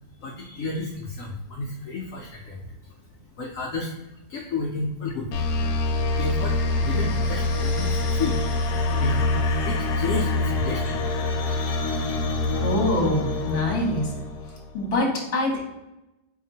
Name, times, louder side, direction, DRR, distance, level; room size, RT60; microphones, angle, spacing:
voice 1, 0.2-2.7 3.4-3.9 4.3-5.5 6.2-8.4 9.0-9.2 9.7-11.0, left 3 dB, 90° left, 0 dB, 0.7 m, -31 dB
sound 1, 5.3-14.7, left 2 dB, 70° left, 1.0 m, -25 dB
voice 2, 12.6-14.1 14.7-15.6, left 1 dB, 40° left, -2 dB, 0.9 m, -24 dB
4.5 x 2.8 x 2.7 m, 0.92 s
omnidirectional pair, 2.0 m